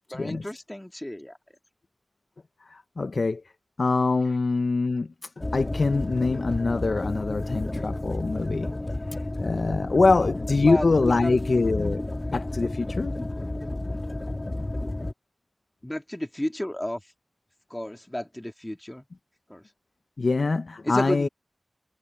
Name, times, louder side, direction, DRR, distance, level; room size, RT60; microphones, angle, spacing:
voice 1, 0.1-1.4 10.6-11.4 15.8-17.0 17.7-19.0 19.5-19.6 20.8-21.3, left 1 dB, 15° left, 2.3 m, -32 dB
voice 2, 2.6-3.4 3.8-8.7 9.1-12.0 12.3-13.1 20.2-21.3, left 3 dB, 75° left, 0.5 m, -24 dB
sound 1, 5.4-15.1, left 2 dB, 35° left, 1.6 m, -31 dB
wide cardioid pair, 65°, 0 cm